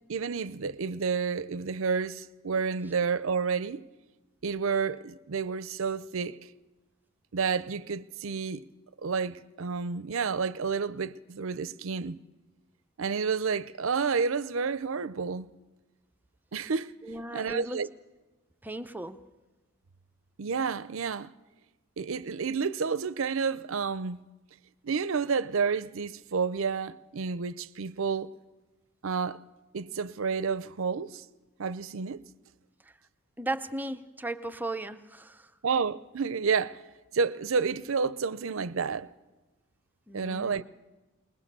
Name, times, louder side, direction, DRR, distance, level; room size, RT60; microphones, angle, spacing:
voice 1, 0.1-3.9 4.4-6.5 7.3-8.7 9.0-12.2 13.0-15.5 16.5-17.0 17.3-17.9 20.4-21.3 22.0-24.2 24.8-28.3 29.0-29.4 29.7-31.2 31.6-32.3 35.6-36.8 37.1-39.1 40.1-40.6, right 5 dB, 65° right, 0.6 m, -30 dB
voice 2, 17.0-17.8 18.6-19.2 33.4-35.5 40.1-40.6, right 2 dB, 10° right, 0.6 m, -36 dB
21.5 x 20.5 x 6.8 m
head